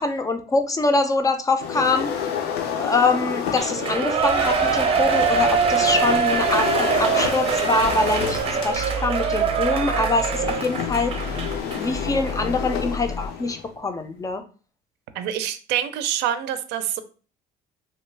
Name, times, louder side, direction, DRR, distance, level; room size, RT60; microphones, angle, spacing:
voice 1, 0.0-2.1 2.8-11.2 11.7-14.4, left 3 dB, 20° left, 8 dB, 0.4 m, -24 dB
sound 1, 1.6-4.2 4.9-13.7, left 7 dB, 70° left, 0.5 m, -30 dB
Shout / Cheering, 3.5-11.9 12.3-12.4, right 5 dB, 35° right, 0.6 m, -23 dB
sound 2, 7.8-10.5 10.9-13.3, equal, 90° left, 1.3 m, -33 dB
voice 2, 15.1-17.0, right 10 dB, 80° right, 10 dB, 0.5 m, -26 dB
2.9 x 2.2 x 3.2 m, 0.37 s
cardioid pair, 125°, 17 cm